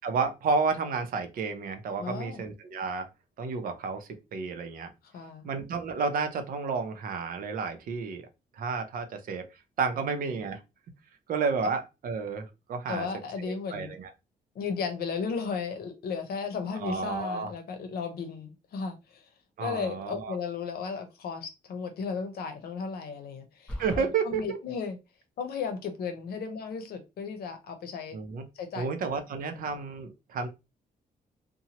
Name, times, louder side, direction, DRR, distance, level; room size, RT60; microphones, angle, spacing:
voice 1, 0.0-3.1 3.4-4.9 5.4-8.2 8.6-9.5 9.8-10.6 11.3-13.1 13.4-14.1 16.8-17.5 19.6-20.3 23.8-24.6 28.1-28.4 28.7-30.5, right 5 dB, 65° right, 0.6 m, -31 dB
voice 2, 2.0-2.4 5.0-5.5 9.9-10.2 12.9-13.9 14.5-19.3 19.6-25.0 25.4-28.2 28.5-28.9 29.4-29.7, left 5 dB, 85° left, 0.8 m, -35 dB
sound 1, 23.7-24.1, left 1 dB, 5° left, 0.7 m, -35 dB
2.9 x 2.2 x 2.8 m
wide cardioid pair, 150°, 16 cm